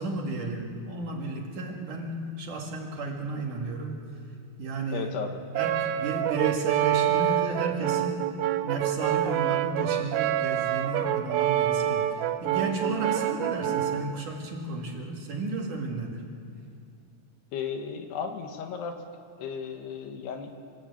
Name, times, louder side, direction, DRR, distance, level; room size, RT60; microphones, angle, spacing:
voice 1, 0.0-4.0 4.6-5.1 5.5-8.3 8.6-12.1 12.4-16.2, right 3 dB, 50° right, 0 dB, 3.1 m, -32 dB
voice 2, 4.9-5.4 17.5-19.0 19.4-20.5, left 6 dB, 70° left, 5 dB, 3.1 m, -34 dB
Brass instrument, 5.5-14.1, right 12 dB, 80° right, 2.9 m, -27 dB
27.0 x 15.0 x 8.4 m, 2.3 s
omnidirectional pair, 5.2 m